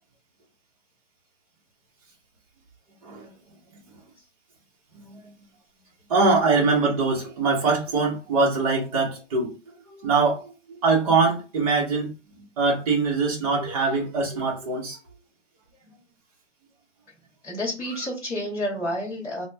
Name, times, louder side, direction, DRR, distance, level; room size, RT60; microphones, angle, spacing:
voice 1, 6.1-9.5 10.0-12.1 12.6-15.0, right 4 dB, 30° right, 0.9 m, -23 dB
voice 2, 17.4-19.4, equal, 5° left, 0.4 m, -30 dB
2.9 x 2.2 x 3.3 m
hypercardioid pair, 160°, 37 cm